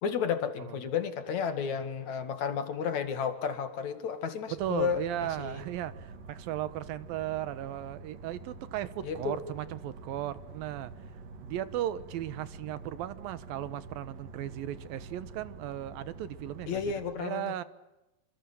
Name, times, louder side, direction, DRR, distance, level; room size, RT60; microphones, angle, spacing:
voice 1, 0.0-5.0 5.4-5.6 9.0-9.4 16.7-17.5, left 7 dB, 55° left, 9 dB, 3.3 m, -32 dB
voice 2, 4.5-10.9 11.4-16.9 17.2-17.6, right 12 dB, 85° right, 14 dB, 3.0 m, -36 dB
sound 1, 4.6-17.1, right 3 dB, 70° right, 3.7 m, -47 dB
26.5 x 26.5 x 7.7 m, 0.98 s
omnidirectional pair, 4.0 m